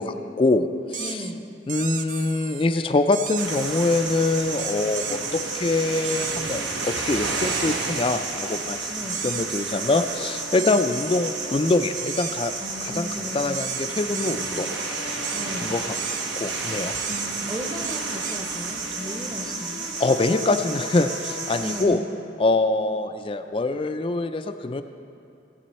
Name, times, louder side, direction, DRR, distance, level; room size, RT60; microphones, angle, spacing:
voice 1, 0.0-1.2 1.7-8.9 9.2-12.5 12.8-13.1 13.3-14.7 15.6-15.8 16.4-16.9 20.0-22.0 22.4-24.8, left 2 dB, 30° left, 9 dB, 0.3 m, -24 dB
sound 1, 0.9-1.3 1.7-2.7 3.1-4.0 4.6-5.5 6.0-6.9 7.3-8.2 9.1-10.1 10.6-11.2 12.0-12.8 13.5-14.8 15.2-15.5 15.9-16.6 16.9-18.8, right 9 dB, 45° right, 0.4 m, -35 dB
voice 2, 1.0-1.5 8.9-9.2 10.6-10.8 12.6-13.6 15.3-15.8 17.1-19.9 21.6-22.0, equal, 20° right, 1 dB, 0.8 m, -35 dB
sound 2, 3.4-21.8, right 3 dB, 80° right, 1.2 m, -31 dB
sound 3, 9.9-12.4 13.9-16.3 17.9-22.0, left 4 dB, 80° left, 0.8 m, -43 dB
16.5 x 8.4 x 4.2 m, 2.6 s
head